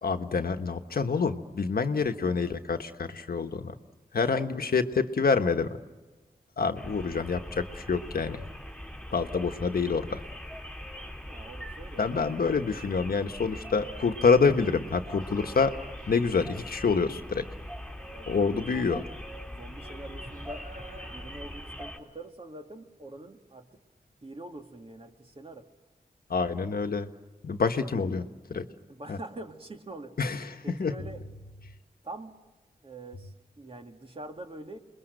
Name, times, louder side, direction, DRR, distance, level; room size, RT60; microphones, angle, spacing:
voice 1, 0.0-3.7 4.1-5.8 6.6-8.4 9.1-10.2 12.0-15.7 16.1-17.5 18.3-19.0 26.3-27.1 27.4-28.2 28.5-28.7 29.1-29.2 30.2-30.9, left 5 dB, 75° left, 7 dB, 1.3 m, -27 dB
voice 2, 4.4-4.8 11.2-12.0 18.1-19.1 19.5-20.7 21.0-23.8 24.2-25.7 27.9-28.0 28.9-30.2 30.6-31.2 32.0-32.4 32.8-34.8, right 2 dB, 35° right, 4 dB, 2.3 m, -44 dB
sound 1, 6.7-22.0, equal, 5° left, 3.8 m, -42 dB
sound 2, 14.9-16.6 17.0-17.4 18.9-19.0 19.7-22.1 24.7-24.8, right 2 dB, 65° right, 4.2 m, -53 dB
28.0 x 22.0 x 6.6 m, 1.2 s
wide cardioid pair, 65°, 16 cm